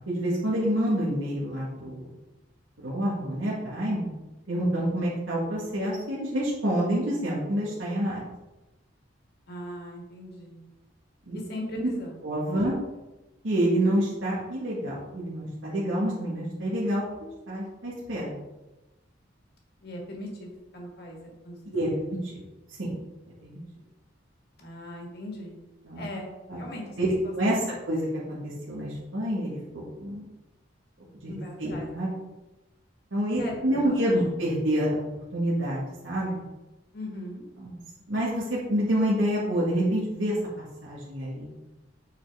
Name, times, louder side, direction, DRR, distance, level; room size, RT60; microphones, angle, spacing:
voice 1, 0.1-2.1 2.8-4.1 4.5-8.2 11.3-11.4 11.8-11.9 12.2-12.7 13.4-17.0 17.5-18.3 21.7-22.4 22.8-23.0 23.4-23.6 25.8-26.0 26.5-26.6 27.0-27.6 27.9-30.3 31.2-31.3 31.6-32.1 33.1-35.1 35.3-36.4 37.6-37.7 38.1-41.5, right 1 dB, 85° right, -6 dB, 1.7 m, -27 dB
voice 2, 9.5-10.6 11.3-12.2 12.6-12.8 19.8-21.2 21.4-21.6 21.9-22.1 24.6-25.5 25.9-26.3 26.5-27.0 27.2-27.3 31.3-31.9 33.4-34.3 36.9-37.5, left 1 dB, 55° left, 0 dB, 1.7 m, -39 dB
9.2 x 4.4 x 3.5 m, 1.1 s
head